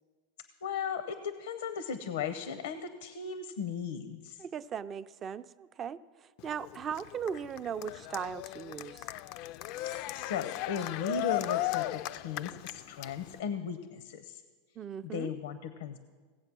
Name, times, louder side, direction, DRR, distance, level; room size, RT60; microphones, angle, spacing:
voice 1, 0.6-4.4 10.1-14.4 15.1-16.0, left 6 dB, 85° left, 11 dB, 0.7 m, -36 dB
voice 2, 4.4-9.1 14.8-15.3, right 7 dB, 30° right, 14 dB, 0.4 m, -38 dB
Cheering, 6.4-13.4, left 16 dB, 55° left, 0.3 m, -36 dB
17.0 x 7.8 x 6.1 m, 1.5 s
supercardioid pair, 125°, 0 cm